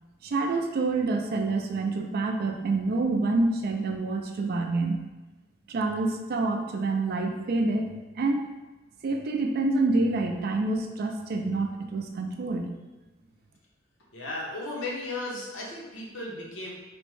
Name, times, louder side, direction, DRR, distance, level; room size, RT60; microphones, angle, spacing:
voice 1, 0.2-5.0 5.7-8.4 9.0-12.7, right 3 dB, 50° right, 4 dB, 0.3 m, -27 dB
voice 2, 14.1-16.7, left 2 dB, 75° left, -3 dB, 0.7 m, -35 dB
3.3 x 2.0 x 3.1 m, 1.1 s
head